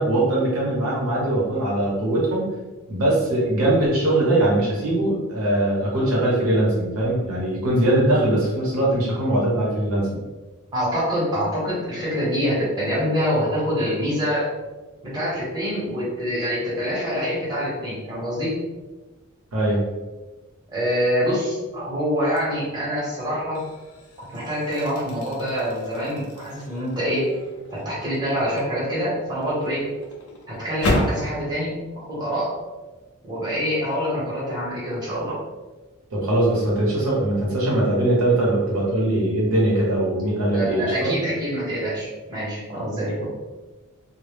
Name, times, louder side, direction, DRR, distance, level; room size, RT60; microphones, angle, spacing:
voice 1, 0.0-2.4 2.9-10.2 19.5-19.8 36.1-41.1, right 1 dB, 85° right, -4 dB, 0.8 m, -21 dB
voice 2, 10.7-14.5 15.0-18.5 20.7-23.6 24.3-27.3 27.7-29.9 30.5-32.6 33.2-35.4 40.5-43.3, equal, 20° right, -7 dB, 0.9 m, -25 dB
sound 1, 22.3-22.7 23.2-31.3, left 1 dB, 85° left, 0.5 m, -32 dB
2.1 x 2.0 x 3.1 m, 1.2 s
head